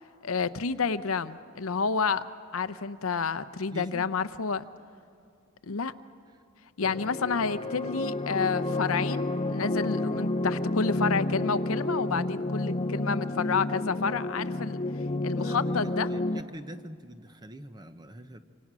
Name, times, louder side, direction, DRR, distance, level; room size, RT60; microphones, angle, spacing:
voice 1, 0.2-2.2 2.5-4.6 5.7-5.9 6.8-14.8 15.2-16.1, left 5 dB, 85° left, 13 dB, 0.7 m, -29 dB
voice 2, 3.7-4.1 15.4-18.4, equal, 20° right, 10 dB, 0.8 m, -43 dB
sound 1, 6.8-16.4, left 2 dB, 30° left, 0.7 m, -30 dB
26.0 x 26.0 x 6.2 m, 2.4 s
head